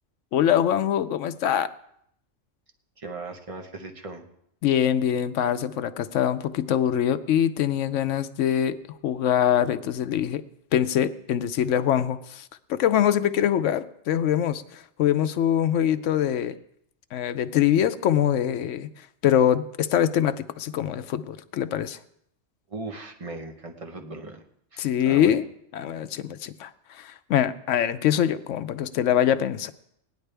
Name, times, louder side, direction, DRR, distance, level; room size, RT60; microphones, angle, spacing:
voice 1, 0.3-1.7 4.6-10.4 10.7-16.6 17.1-18.9 19.2-22.0 24.8-25.4 25.7-29.7, left 10 dB, 80° left, 12 dB, 0.9 m, -24 dB
voice 2, 3.0-4.3 22.7-24.4 24.7-25.4, right 3 dB, 30° right, 4 dB, 1.0 m, -38 dB
17.0 x 10.5 x 3.4 m, 0.72 s
omnidirectional pair, 1.3 m